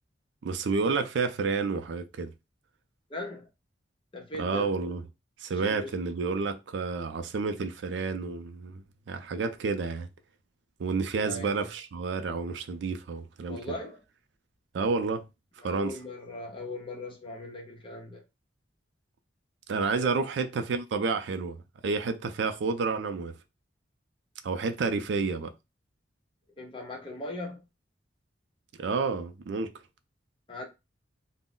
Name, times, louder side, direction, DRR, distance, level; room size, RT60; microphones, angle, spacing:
voice 1, 0.4-2.3 4.4-5.0 5.4-10.1 10.8-13.6 14.7-15.2 15.6-16.0 19.7-23.3 24.4-25.5 28.8-29.7, right 4 dB, 70° right, 0.4 m, -30 dB
voice 2, 3.1-3.5 4.1-4.7 5.6-5.9 11.2-11.7 13.5-14.0 15.6-18.2 19.8-20.2 26.6-27.6 30.5-30.7, left 2 dB, 30° left, 0.6 m, -39 dB
2.2 x 2.0 x 3.7 m
head